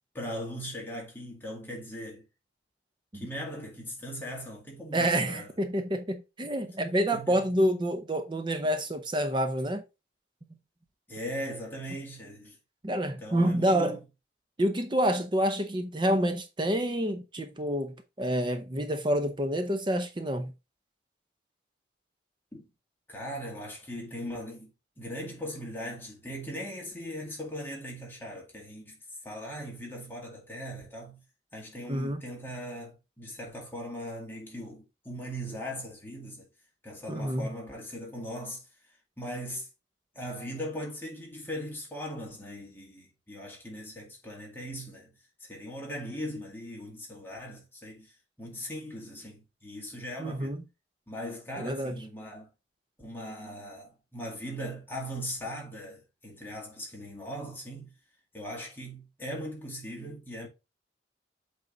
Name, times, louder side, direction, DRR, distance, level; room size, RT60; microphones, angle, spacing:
voice 1, 0.1-2.3 3.1-5.5 7.1-7.5 11.1-12.6 13.1-14.0 22.5-22.7 23.1-29.0 29.2-31.2 31.5-36.4 36.8-38.6 39.2-39.7 40.1-45.1 45.4-50.6 51.1-52.5 53.0-57.9 58.3-60.5, equal, 10° left, 2.0 m, -39 dB
voice 2, 4.9-9.8 12.8-14.0 14.6-20.5 31.9-32.2 37.1-37.5 50.2-50.6 51.6-52.0, right 1 dB, 25° right, 0.7 m, -28 dB
8.0 x 3.6 x 3.9 m
head